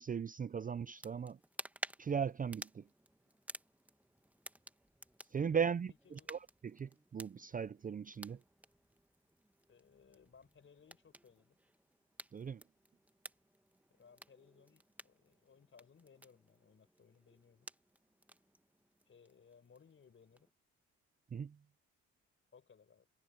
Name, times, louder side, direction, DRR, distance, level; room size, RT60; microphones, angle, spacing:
voice 1, 0.0-1.4 2.0-2.8 5.3-5.9 6.3-6.4 6.7-8.4 12.3-12.6 21.3-21.5, right 7 dB, 30° right, 0.5 m, -37 dB
sound 1, 0.9-20.5, right 1 dB, 5° right, 1.2 m, -54 dB
voice 2, 5.4-5.8 6.0-6.4 9.7-11.6 13.9-17.7 19.1-20.5 22.5-23.1, left 6 dB, 40° left, 5.0 m, -63 dB
cardioid pair, 90°, 30 cm